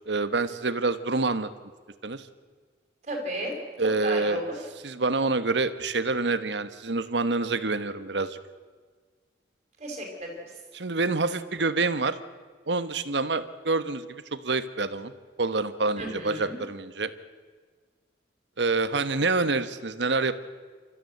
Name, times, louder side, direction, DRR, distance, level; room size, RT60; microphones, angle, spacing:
voice 1, 0.1-1.5 2.0-2.3 3.8-4.4 4.8-8.4 10.7-12.2 12.7-15.1 15.4-17.1 18.6-20.3, right 3 dB, 90° right, 12 dB, 1.2 m, -27 dB
voice 2, 3.0-3.5 3.8-4.6 9.8-10.5 16.0-16.5, right 1 dB, 40° right, 1 dB, 5.7 m, -34 dB
29.0 x 14.0 x 8.0 m, 1.5 s
head